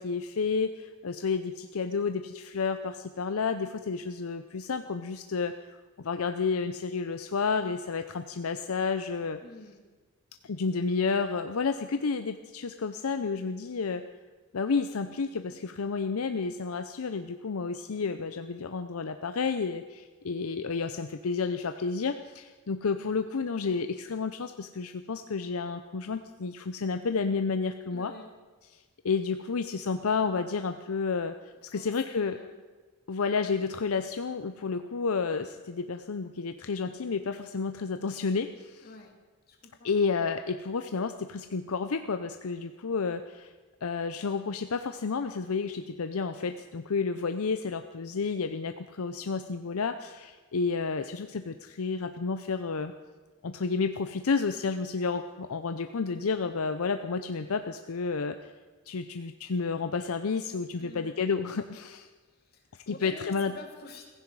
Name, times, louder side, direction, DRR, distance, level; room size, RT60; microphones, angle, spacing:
voice 1, 0.0-9.4 10.4-14.0 14.5-28.1 29.0-31.3 31.6-32.4 33.1-38.9 39.8-43.5 43.8-52.9 53.4-58.5 58.9-62.1 62.9-63.5, left 5 dB, 75° left, 8 dB, 0.6 m, -31 dB
voice 2, 9.4-9.8 27.9-28.3 31.7-32.6 38.8-39.1 39.5-40.0 60.8-61.2 62.3-64.1, left 2 dB, 45° left, 1 dB, 2.6 m, -48 dB
16.0 x 15.5 x 4.8 m, 1.3 s
head